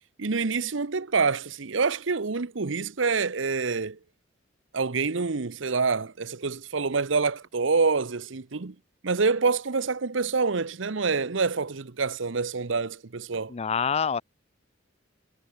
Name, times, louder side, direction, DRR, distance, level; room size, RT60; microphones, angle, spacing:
voice 1, 0.2-4.0 4.7-8.7 9.0-13.5, right 4 dB, 70° right, 0.9 m, -26 dB
voice 2, 13.5-14.2, left 6 dB, 30° left, 0.5 m, -26 dB
head